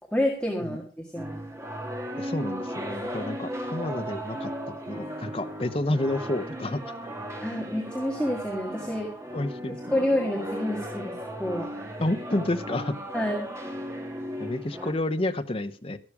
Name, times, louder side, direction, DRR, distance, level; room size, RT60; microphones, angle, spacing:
voice 1, 0.1-0.8 1.1-1.4 7.4-9.1 9.9-11.1 11.4-11.7 13.1-13.5, left 1 dB, 5° left, 0 dB, 1.8 m, -28 dB
sound 1, 1.2-14.9, equal, 15° right, 1.8 m, -36 dB
voice 2, 2.2-6.9 9.3-9.8 12.0-13.0 14.4-16.0, left 1 dB, 30° left, 9 dB, 0.9 m, -30 dB
13.0 x 12.0 x 4.8 m, 0.34 s
head